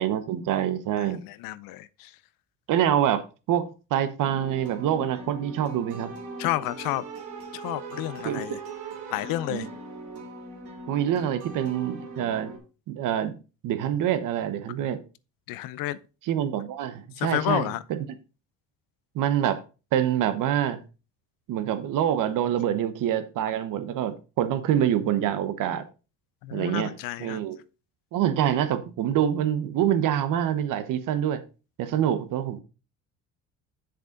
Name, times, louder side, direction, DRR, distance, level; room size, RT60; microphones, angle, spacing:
voice 1, 0.0-1.2 2.7-6.1 8.2-8.6 9.5-9.7 10.9-12.5 12.9-13.4 13.6-15.0 16.2-18.1 19.1-19.6 19.9-20.8 21.5-25.8 26.5-26.9 27.2-27.6 28.1-31.4 31.8-32.6, right 10 dB, 65° right, 1.2 m, -26 dB
voice 2, 1.0-2.1 6.4-7.0 7.5-8.6 9.1-9.7 15.5-16.0 17.2-17.8 26.4-27.4, left 15 dB, 70° left, 0.6 m, -30 dB
sound 1, 4.2-12.6, right 3 dB, 85° right, 3.5 m, -40 dB
7.9 x 6.6 x 3.9 m
cardioid pair, 105°, 35 cm